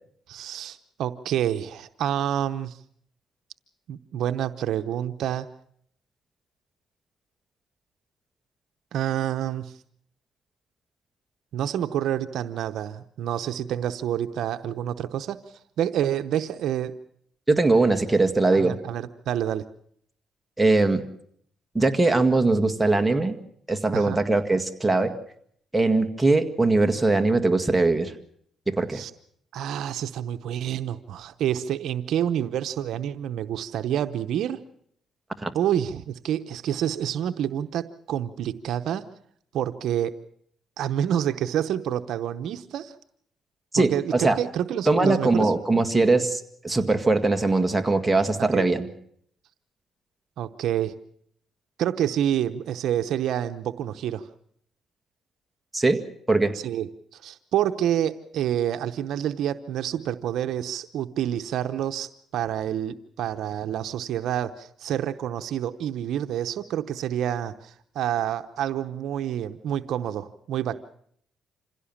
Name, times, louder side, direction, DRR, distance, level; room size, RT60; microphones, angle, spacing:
voice 1, 0.3-2.8 3.9-5.5 8.9-9.7 11.5-15.4 15.8-16.9 18.5-19.6 23.9-24.2 28.9-29.1 29.5-34.6 35.5-39.1 39.5-40.1 40.8-42.9 43.7-45.5 48.5-48.7 50.4-50.9 51.8-54.3 56.6-70.8, right 10 dB, 75° right, 9 dB, 0.9 m, -28 dB
voice 2, 17.5-18.8 20.6-21.0 21.7-23.4 23.7-25.1 25.7-28.1 28.7-29.0 35.4-35.5 43.7-44.4 44.9-48.9 55.7-56.0 56.3-56.6, right 3 dB, 10° right, 6 dB, 1.8 m, -21 dB
26.5 x 16.5 x 7.3 m, 0.66 s
cardioid pair, 90°, 0 cm